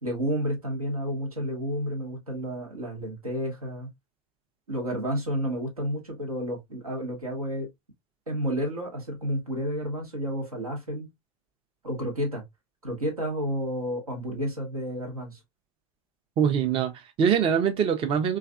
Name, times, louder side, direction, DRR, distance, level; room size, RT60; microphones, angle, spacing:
voice 1, 0.0-3.9 4.7-7.7 8.3-11.1 11.8-12.4 12.8-15.4, equal, 85° right, 1.0 m, -31 dB
voice 2, 16.4-18.4, right 7 dB, 30° right, 0.5 m, -23 dB
3.2 x 2.4 x 2.3 m
figure-of-eight pair, 80°, 18 cm